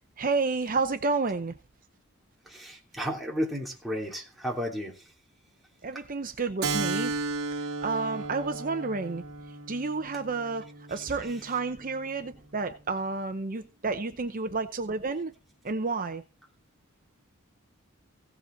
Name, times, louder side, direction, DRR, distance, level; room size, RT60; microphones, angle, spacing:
voice 1, 0.2-1.5 5.8-7.2 7.8-9.2 9.7-15.3 15.6-16.2, right 3 dB, 40° right, 0.7 m, -30 dB
voice 2, 2.5-5.0, equal, ahead, 3.1 m, -33 dB
Keyboard (musical), 6.6-11.7, right 3 dB, 80° right, 1.4 m, -34 dB
16.5 x 7.9 x 3.9 m
head